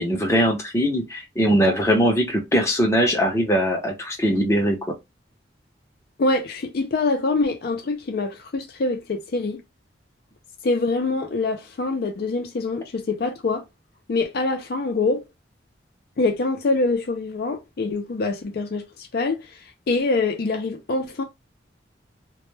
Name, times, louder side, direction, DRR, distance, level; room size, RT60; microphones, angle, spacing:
voice 1, 0.0-5.0, equal, 15° left, 0.6 m, -21 dB
voice 2, 6.2-9.6 10.6-13.6 14.1-15.2 16.2-21.2, left 3 dB, 55° left, 0.4 m, -25 dB
2.1 x 2.1 x 3.1 m
head